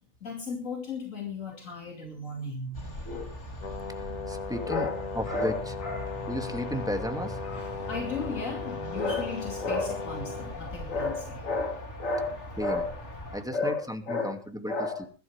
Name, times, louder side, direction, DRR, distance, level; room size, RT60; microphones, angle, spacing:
voice 1, 0.2-3.4 4.5-6.2 7.4-13.0 13.5-15.1, left 3 dB, 75° left, 2 dB, 3.0 m, -33 dB
sound 1, 2.7-13.4, left 1 dB, 60° left, 3.4 m, -40 dB
Brass instrument, 3.6-10.6, left 5 dB, 35° left, 1.0 m, -38 dB
voice 2, 4.3-4.9 5.2-5.5 6.3-7.4 12.6-12.8 13.3-14.4 14.6-14.7 15.0-15.1, equal, 5° right, 5 dB, 2.5 m, -33 dB
21.0 x 12.5 x 3.5 m, 0.34 s
omnidirectional pair, 1.4 m